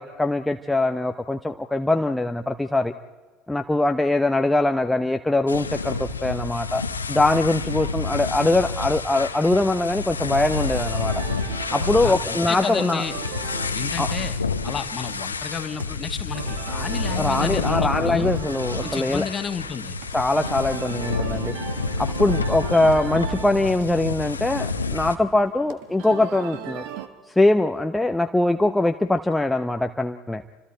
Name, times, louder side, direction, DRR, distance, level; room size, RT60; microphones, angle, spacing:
voice 1, 0.0-2.9 3.5-6.8 7.1-11.2 11.7-13.0 14.0-14.1 17.1-19.3 20.1-21.5 22.0-26.8 27.4-30.4, left 2 dB, 10° left, 6 dB, 0.8 m, -22 dB
sound 1, 5.5-25.2, left 4 dB, 90° left, 1.0 m, -29 dB
sound 2, 10.4-27.1, right 9 dB, 60° right, 1.6 m, -38 dB
voice 2, 12.0-13.1 13.7-14.4 14.6-18.3 18.8-20.0, left 6 dB, 35° left, 8 dB, 1.8 m, -31 dB
29.5 x 26.0 x 4.5 m, 1.4 s
figure-of-eight pair, 70°, 0 cm